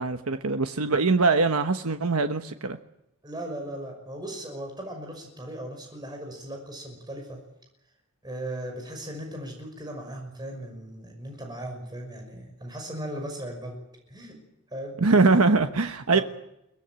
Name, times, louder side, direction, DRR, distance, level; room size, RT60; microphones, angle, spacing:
voice 1, 0.0-2.8 15.0-16.2, right 3 dB, 85° right, 8 dB, 1.2 m, -22 dB
voice 2, 3.2-7.4 8.2-13.8 14.1-14.4 14.7-15.0 16.1-16.2, right 1 dB, 20° right, 2 dB, 5.9 m, -37 dB
23.0 x 18.5 x 9.0 m, 0.84 s
head